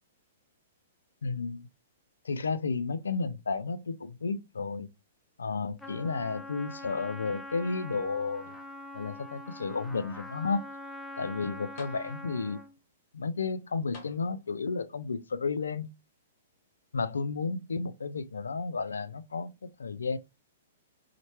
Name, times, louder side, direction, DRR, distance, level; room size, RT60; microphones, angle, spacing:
voice 1, 1.2-1.7 2.2-4.9 5.4-8.5 8.9-10.6 11.2-12.6 13.1-15.9 16.9-20.2, left 4 dB, 80° left, 0.4 m, -32 dB
Trumpet, 5.8-12.7, left 1 dB, 5° left, 0.4 m, -44 dB
sound 1, 6.8-7.5 7.9-8.9 9.6-9.7 11.3-11.4 11.8-12.5 13.9-14.8 15.8-15.9, left 2 dB, 45° left, 1.1 m, -54 dB
4.1 x 2.1 x 3.1 m
hypercardioid pair, 115°, 0 cm